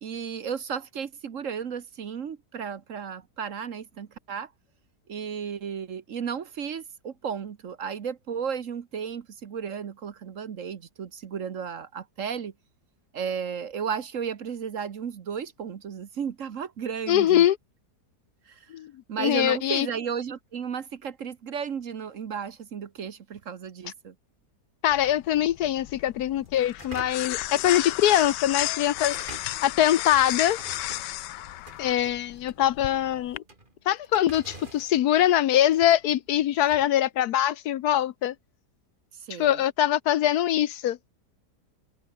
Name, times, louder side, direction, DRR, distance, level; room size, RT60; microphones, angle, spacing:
voice 1, 0.0-4.5 5.1-12.5 13.1-17.5 18.5-18.6 19.1-24.1 39.2-39.6, right 7 dB, 55° right, 1.3 m, -34 dB
voice 2, 17.1-17.6 18.7-18.9 19.2-19.9 24.8-29.2 29.6-30.6 31.8-33.4 33.9-38.3 39.4-41.1, left 12 dB, 70° left, 1.2 m, -23 dB
sound 1, 24.9-33.4, left 16 dB, 90° left, 1.2 m, -33 dB
sound 2, 26.3-36.9, right 2 dB, 30° right, 3.3 m, -48 dB
omnidirectional pair, 1.8 m